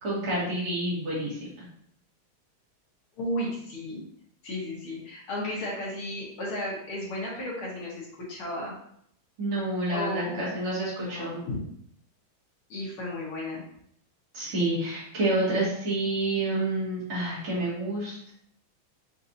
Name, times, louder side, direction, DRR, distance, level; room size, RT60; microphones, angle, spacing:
voice 1, 0.0-1.5 9.4-11.4 14.3-18.3, right 2 dB, 85° right, -9 dB, 3.0 m, -29 dB
voice 2, 3.2-4.0 4.4-8.8 9.9-10.4 11.0-11.6 12.7-13.6, left 1 dB, 85° left, -5 dB, 2.3 m, -34 dB
6.8 x 2.7 x 2.8 m, 0.69 s
omnidirectional pair, 2.3 m